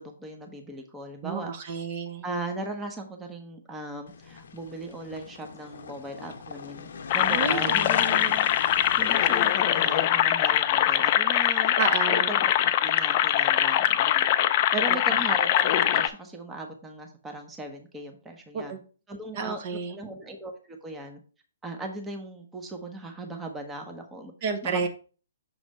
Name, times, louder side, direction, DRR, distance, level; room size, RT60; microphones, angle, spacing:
voice 1, 0.0-1.5 2.2-6.9 7.1-8.5 9.0-11.7 12.3-12.5 12.8-14.3 14.7-18.7 19.1-21.2 21.6-24.3 24.6-24.9, right 2 dB, 10° right, 3 dB, 0.9 m, -38 dB
voice 2, 1.2-2.2 7.3-7.8 8.1-8.2 11.8-12.3 18.5-18.8 19.3-20.0 24.4-24.9, right 5 dB, 40° right, 6 dB, 0.9 m, -30 dB
sound 1, 4.1-11.1, left 5 dB, 65° left, 0.8 m, -40 dB
sound 2, 7.1-16.1, left 12 dB, 35° left, 0.4 m, -23 dB
6.2 x 3.2 x 5.3 m, 0.39 s
hypercardioid pair, 145°, 0 cm